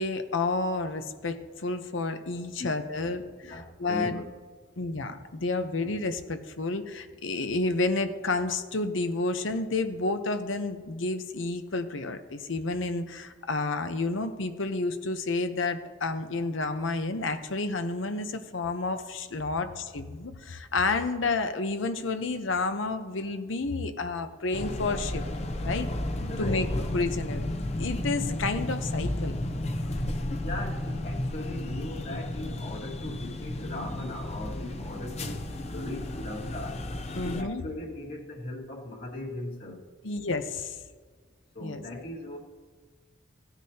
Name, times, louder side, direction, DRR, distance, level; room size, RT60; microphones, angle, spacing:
voice 1, 0.0-4.1 4.8-25.2 25.6-25.9 26.4-29.4 37.1-37.6 40.0-40.8 41.6-41.8, left 3 dB, 85° left, 8 dB, 0.9 m, -30 dB
voice 2, 3.3-4.3 26.3-26.7 30.4-35.4 35.7-36.8 37.2-39.8 41.5-42.4, left 2 dB, 55° left, -3 dB, 2.1 m, -38 dB
sound 1, 24.5-37.4, left 1 dB, 35° left, 0.7 m, -33 dB
17.0 x 9.9 x 2.9 m, 1.5 s
head